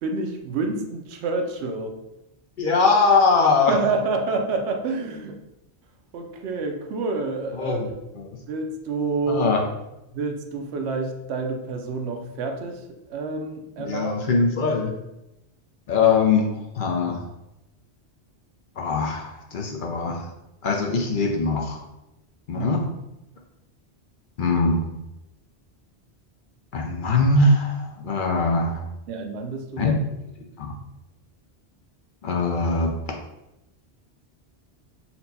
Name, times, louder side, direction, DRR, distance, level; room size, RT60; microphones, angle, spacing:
voice 1, 0.0-2.0 3.7-5.4 6.1-7.8 8.1-9.5 10.1-12.8 13.1-14.2 22.6-22.9 29.1-29.9, right 3 dB, 75° right, 4 dB, 0.9 m, -28 dB
voice 2, 2.6-3.7 7.6-7.9 8.2-8.3 9.3-9.6 13.8-14.9 15.9-17.2 18.8-20.2 20.6-21.8 22.5-22.8 24.4-24.9 26.7-28.8 29.8-29.9 30.6-30.7 32.2-32.9, left 3 dB, 55° left, 1 dB, 0.6 m, -21 dB
4.3 x 2.2 x 4.0 m, 0.91 s
omnidirectional pair, 1.1 m